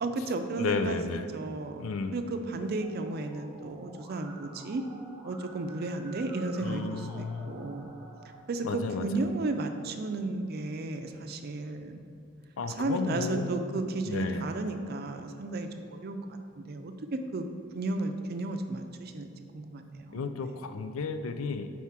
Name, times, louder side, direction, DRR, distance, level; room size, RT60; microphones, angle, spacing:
voice 1, 0.0-1.0 1.3-1.8 2.1-4.8 5.2-8.0 8.5-12.1 12.8-17.5 17.7-20.2, right 2 dB, 50° right, 6 dB, 0.4 m, -34 dB
voice 2, 0.6-1.3 1.8-2.1 6.6-7.5 8.6-9.2 12.6-13.6 14.1-14.5 20.1-21.7, left 4 dB, 90° left, 9 dB, 0.4 m, -33 dB
Musical instrument, 2.8-8.4, right 1 dB, 15° right, 0.9 m, -51 dB
4.7 x 4.2 x 5.8 m, 2.4 s
head